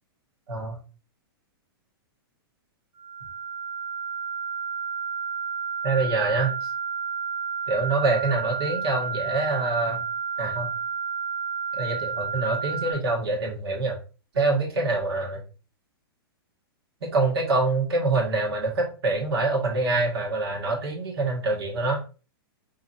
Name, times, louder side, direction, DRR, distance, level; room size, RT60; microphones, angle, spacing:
voice 1, 0.5-0.8 5.8-6.5 7.7-10.0 10.4-10.7 11.8-14.0 14.3-15.4 17.0-22.0, right 3 dB, 80° right, -1 dB, 2.0 m, -25 dB
sound 1, 3.0-12.9, right 6 dB, 20° right, 1.4 m, -31 dB
4.3 x 3.8 x 2.6 m, 0.34 s
hypercardioid pair, 160°, 13 cm